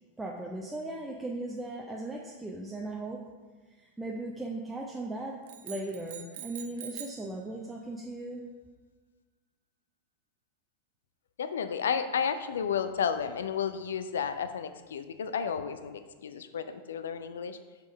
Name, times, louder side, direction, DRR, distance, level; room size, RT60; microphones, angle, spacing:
voice 1, 0.2-3.2 3.8-5.4 5.6-8.4, right 2 dB, 10° right, -3 dB, 0.7 m, -37 dB
sound 1, 5.5-7.3, right 9 dB, 55° right, 0.5 m, -44 dB
voice 2, 11.4-17.6, left 7 dB, 65° left, 10 dB, 0.5 m, -32 dB
6.3 x 5.2 x 5.1 m, 1.4 s
figure-of-eight pair, 90°, 0 cm